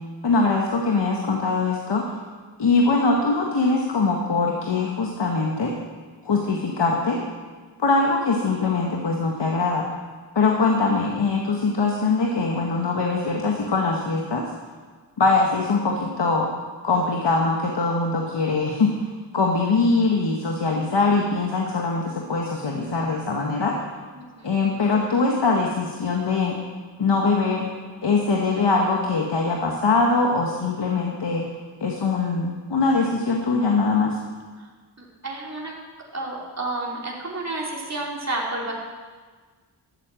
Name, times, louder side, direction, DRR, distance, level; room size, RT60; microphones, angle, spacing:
voice 1, 0.2-2.0 2.6-5.7 6.2-7.2 7.8-9.9 10.3-14.4 15.2-16.5 16.8-23.7 24.4-26.5 27.0-27.7 28.0-31.5 31.8-34.2, left 3 dB, 65° left, 0 dB, 1.5 m, -22 dB
voice 2, 24.1-24.5 34.6-34.7 35.0-35.7 36.1-38.7, right 2 dB, 35° right, -3 dB, 3.1 m, -31 dB
12.5 x 8.5 x 7.6 m, 1.5 s
cardioid pair, 60°, 44 cm